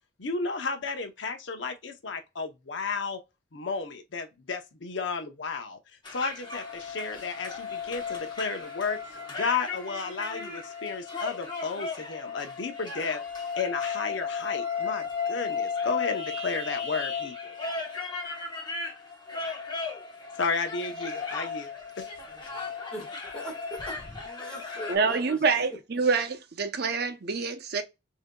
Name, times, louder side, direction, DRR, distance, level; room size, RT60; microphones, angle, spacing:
voice 1, 0.2-3.2 3.5-5.8 6.1-13.2 13.6-17.6 20.4-22.1, left 4 dB, 75° left, 0.7 m, -33 dB
sound 1, 6.0-25.0, left 5 dB, 25° left, 1.1 m, -35 dB
voice 2, 22.9-25.7, right 1 dB, 5° left, 1.6 m, -41 dB
voice 3, 24.9-27.8, right 4 dB, 55° right, 0.7 m, -26 dB
6.4 x 2.7 x 2.2 m
head